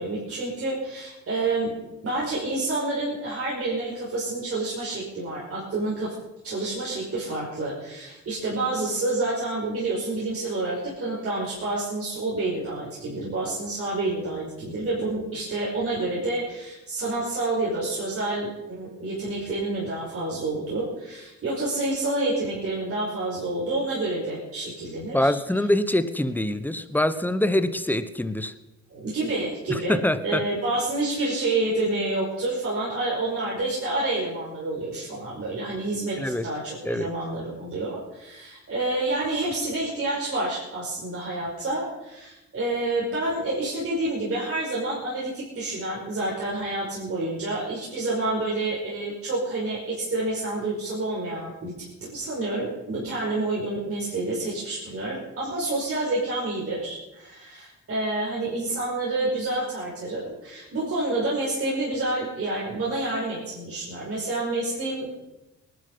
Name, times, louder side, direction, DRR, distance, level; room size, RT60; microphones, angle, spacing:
voice 1, 0.0-6.1 6.4-25.7 28.9-51.7 52.0-65.1, right 2 dB, 50° right, -5 dB, 5.4 m, -28 dB
voice 2, 25.1-28.5 29.7-30.4 36.2-36.5 36.8-37.1, left 1 dB, 5° left, 12 dB, 1.1 m, -24 dB
19.5 x 11.5 x 5.5 m, 1.0 s
cardioid pair, 90°, 30 cm